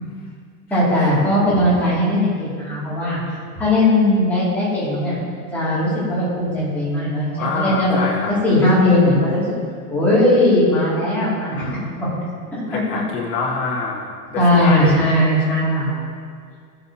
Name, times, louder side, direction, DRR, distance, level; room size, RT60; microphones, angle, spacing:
voice 1, 0.7-3.2 3.6-5.2 5.5-8.0 8.4-9.4 9.9-11.6 12.5-12.6 12.9-13.0 14.3-15.9, left 1 dB, 5° left, -11 dB, 2.4 m, -18 dB
voice 2, 7.4-8.3 11.5-12.0 12.7-15.1, left 4 dB, 70° left, -2 dB, 2.0 m, -26 dB
14.5 x 6.7 x 2.8 m, 2.1 s
supercardioid pair, 175°, 46 cm